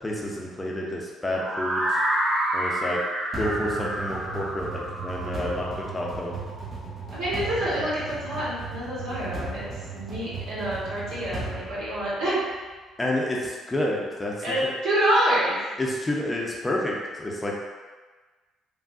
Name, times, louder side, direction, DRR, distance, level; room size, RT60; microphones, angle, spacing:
voice 1, 0.0-2.0 2.5-3.0 3.4-6.4 13.0-14.3 14.6-14.7 15.8-17.7, left 1 dB, 20° left, -2 dB, 0.6 m, -29 dB
sound 1, 1.3-7.3, right 1 dB, 15° right, 1.0 m, -29 dB
sound 2, 3.3-12.5, right 3 dB, 40° right, 0.8 m, -36 dB
voice 2, 7.1-9.6 9.9-12.4 14.4-15.6, right 1 dB, 75° right, -9 dB, 1.4 m, -27 dB
3.5 x 2.3 x 2.6 m, 1.3 s
supercardioid pair, 65°, 0 cm